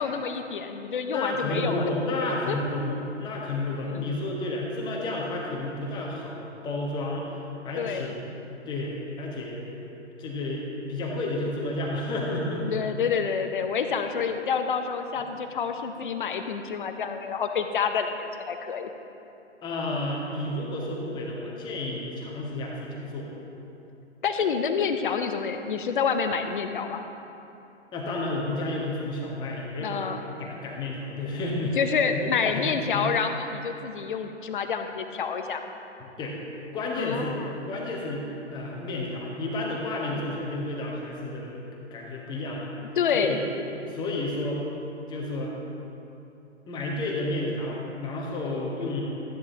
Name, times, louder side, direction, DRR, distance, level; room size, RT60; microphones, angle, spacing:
voice 1, 0.0-1.9 2.5-2.6 3.9-4.0 7.8-8.1 12.6-18.1 18.5-18.9 24.2-27.1 29.8-30.2 31.8-35.6 37.0-37.5 43.0-43.4, left 6 dB, 45° left, 7 dB, 0.8 m, -28 dB
voice 2, 1.1-8.2 8.7-9.8 10.2-12.7 19.6-23.3 27.9-33.0 36.0-36.4 36.7-37.4 37.7-41.6 41.9-42.7 43.1-43.4 43.9-44.6 45.1-45.5 46.7-49.0, left 2 dB, 10° left, -2 dB, 1.2 m, -31 dB
13.0 x 9.9 x 3.7 m, 2.8 s
figure-of-eight pair, 125°, 36 cm